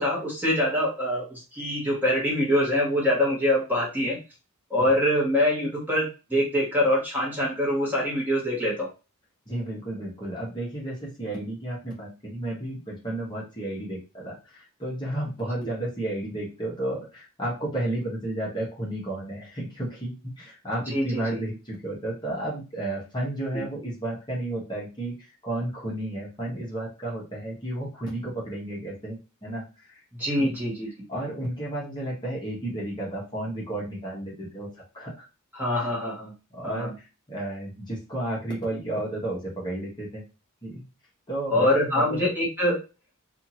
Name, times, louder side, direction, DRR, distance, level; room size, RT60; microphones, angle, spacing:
voice 1, 0.0-4.2 4.7-8.9 15.6-15.7 20.9-21.4 23.5-23.6 30.2-30.9 35.5-36.3 36.6-36.9 41.5-42.8, left 1 dB, 10° right, -5 dB, 1.1 m, -24 dB
voice 2, 9.5-30.0 30.3-30.5 31.1-35.2 35.7-35.9 36.5-40.2 40.6-40.8 41.3-42.3, right 1 dB, 20° left, -5 dB, 1.0 m, -32 dB
2.7 x 2.5 x 2.8 m, 0.30 s
head